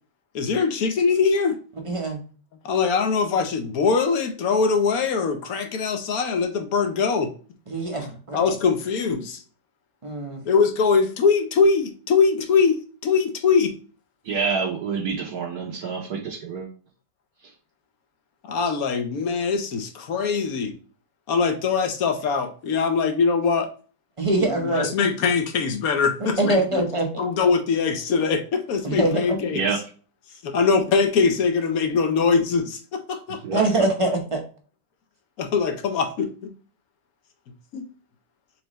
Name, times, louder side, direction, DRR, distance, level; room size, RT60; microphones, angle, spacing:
voice 1, 0.3-1.5 2.6-7.3 8.3-9.4 10.5-13.7 18.4-20.7 21.3-23.7 24.6-26.9 27.2-29.6 30.4-33.4 35.4-36.5 37.7-37.8, left 5 dB, 65° left, 6 dB, 1.1 m, -22 dB
voice 2, 1.8-2.2 7.7-8.5 10.0-10.4 24.2-24.9 26.4-27.1 28.8-29.4 33.5-34.4, right 2 dB, 30° right, 2 dB, 0.6 m, -23 dB
voice 3, 14.3-16.7 29.5-29.8 33.4-33.9, right 5 dB, 65° right, -1 dB, 1.3 m, -27 dB
4.6 x 3.8 x 3.1 m, 0.38 s
omnidirectional pair, 1.8 m